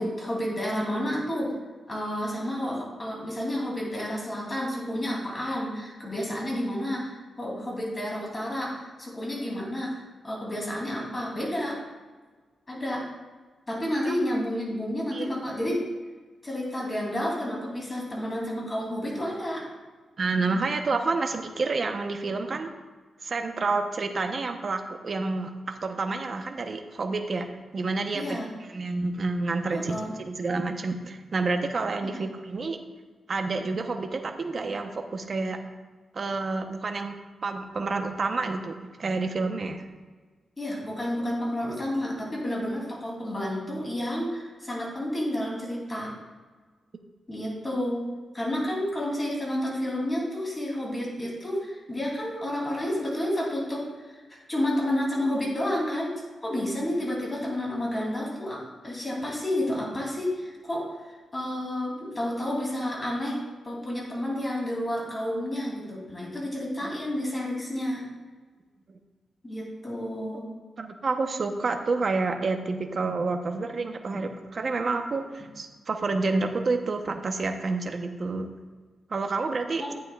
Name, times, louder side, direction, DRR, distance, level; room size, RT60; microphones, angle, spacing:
voice 1, 0.0-1.5 1.8-7.1 7.4-9.9 10.2-11.8 12.7-13.0 13.7-15.8 16.4-19.6 28.1-28.5 29.7-30.1 32.0-32.2 40.6-46.1 47.3-48.0 48.3-54.2 54.5-68.1 69.4-70.5 79.8-79.9, left 1 dB, 25° left, -3 dB, 2.8 m, -30 dB
voice 2, 15.1-15.4 20.2-22.7 23.2-28.4 28.7-32.8 33.3-35.6 36.1-37.1 37.4-39.9 66.8-66.9 68.9-69.0 70.8-78.5 79.1-79.8, right 3 dB, 45° right, 5 dB, 0.8 m, -29 dB
10.0 x 8.8 x 2.3 m, 1.4 s
cardioid pair, 105°, 0 cm